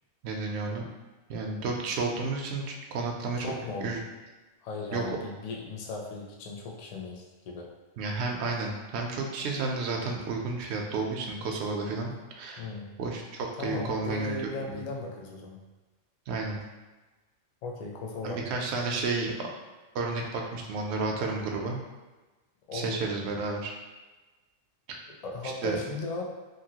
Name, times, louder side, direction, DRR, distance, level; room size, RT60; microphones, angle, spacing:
voice 1, 0.2-0.8 1.3-3.4 3.8-4.0 4.9-5.0 8.0-12.7 13.0-14.3 14.6-14.8 16.3-16.6 18.2-19.5 19.9-21.8 22.7-23.7 24.9-25.0 25.6-25.8, right 3 dB, 65° right, 1 dB, 0.7 m, -31 dB
voice 2, 3.4-4.0 4.6-7.7 12.6-13.0 13.5-15.6 17.6-18.5 22.7-23.0 25.2-26.3, left 3 dB, 70° left, -1 dB, 0.3 m, -37 dB
2.9 x 2.6 x 2.8 m, 1.2 s
omnidirectional pair, 1.3 m